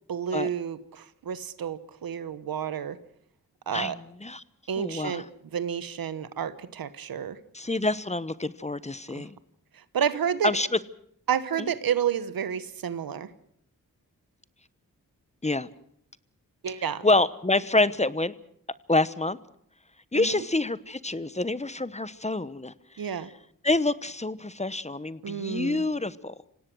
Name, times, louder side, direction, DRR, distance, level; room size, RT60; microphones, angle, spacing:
voice 1, 0.1-3.0 3.7-4.0 4.7-5.2 5.5-7.4 9.1-9.3 9.7-10.5 11.3-13.3 16.6-17.0 20.1-20.5 23.0-23.3 25.2-25.8, right 8 dB, 85° right, 15 dB, 1.1 m, -30 dB
voice 2, 4.8-5.2 7.5-9.4 10.4-10.7 11.6-11.7 15.4-15.7 17.0-18.3 18.9-19.4 20.1-22.7 23.6-26.3, left 2 dB, 20° left, 16 dB, 1.0 m, -27 dB
26.0 x 17.5 x 6.2 m, 0.69 s
cardioid pair, 45°, 34 cm